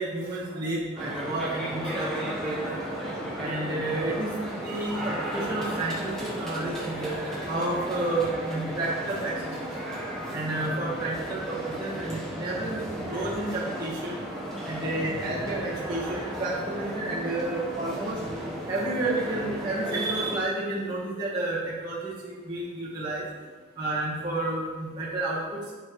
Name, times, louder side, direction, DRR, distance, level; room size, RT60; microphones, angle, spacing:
voice 1, 0.0-2.8 3.4-4.3 4.6-6.0 6.3-7.1 7.5-9.3 10.3-11.1 11.5-12.8 13.1-14.1 14.7-18.1 18.7-22.0 22.2-23.2 23.8-25.4, right 2 dB, 20° right, -9 dB, 2.0 m, -30 dB
sound 1, 1.0-20.4, right 1 dB, 5° left, 1.3 m, -34 dB
8.6 x 4.5 x 4.9 m, 1.4 s
head